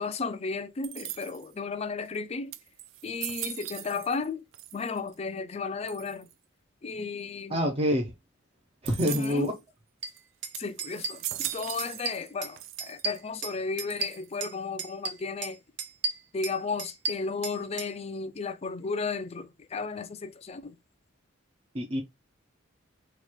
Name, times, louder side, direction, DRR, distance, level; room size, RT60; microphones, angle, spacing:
voice 1, 0.0-2.5 3.0-4.4 4.7-6.3 6.8-7.6 9.1-9.5 10.6-15.6 16.3-20.8, left 4 dB, 30° left, 0.4 m, -34 dB
sound 1, 0.8-1.6 2.1-2.2 2.5-4.3 4.5-5.1 5.9-6.3 8.9-9.5 10.1-10.2 10.5-12.3 12.6-13.2 13.9-14.5, right 12 dB, 80° right, 0.4 m, -39 dB
voice 2, 7.5-8.1 8.8-9.5 21.7-22.0, equal, 30° right, 0.6 m, -26 dB
sound 2, 10.0-10.1 10.4-10.5 10.8-11.5 11.8-12.5 12.8-14.5 14.8-15.5 15.8-17.9, right 3 dB, 60° right, 0.9 m, -34 dB
3.1 x 2.4 x 4.3 m
head